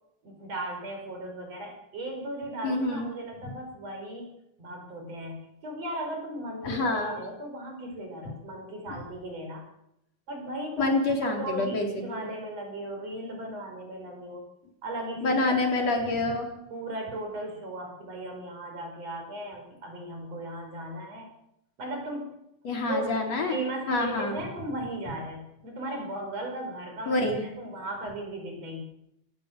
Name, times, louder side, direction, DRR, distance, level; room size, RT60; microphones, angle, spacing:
voice 1, 0.2-4.3 4.6-9.6 10.3-10.9 11.2-14.5 14.8-15.4 15.7-15.9 16.7-21.3 21.8-22.4 22.9-23.1 23.5-28.8, right 1 dB, 55° right, 2 dB, 6.4 m, -37 dB
voice 2, 2.6-3.1 6.6-7.2 10.8-12.3 15.2-16.5 22.6-23.6 23.9-24.4 27.1-27.4, left 2 dB, 55° left, 2 dB, 4.7 m, -27 dB
26.0 x 17.5 x 6.7 m, 0.84 s
omnidirectional pair, 3.5 m